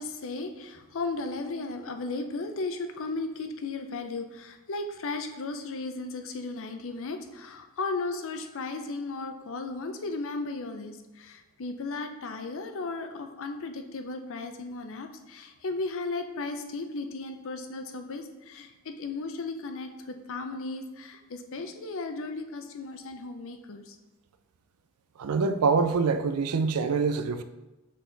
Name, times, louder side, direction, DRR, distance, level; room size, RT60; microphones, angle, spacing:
voice 1, 0.0-24.0, left 3 dB, 65° left, 0.6 m, -35 dB
voice 2, 25.2-27.4, right 4 dB, 85° right, 0.4 m, -25 dB
6.4 x 4.1 x 3.9 m
head